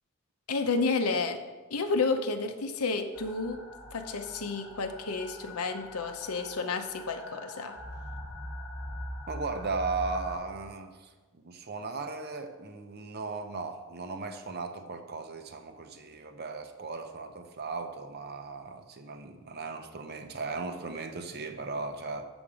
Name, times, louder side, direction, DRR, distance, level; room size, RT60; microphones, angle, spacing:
voice 1, 0.5-1.4 1.7-3.6 3.9-7.7, left 4 dB, 90° left, 7 dB, 0.8 m, -31 dB
sound 1, 3.1-10.4, equal, ahead, 1.0 m, -42 dB
voice 2, 9.3-22.3, right 3 dB, 45° right, 7 dB, 0.7 m, -37 dB
7.1 x 7.0 x 4.9 m, 1.3 s
head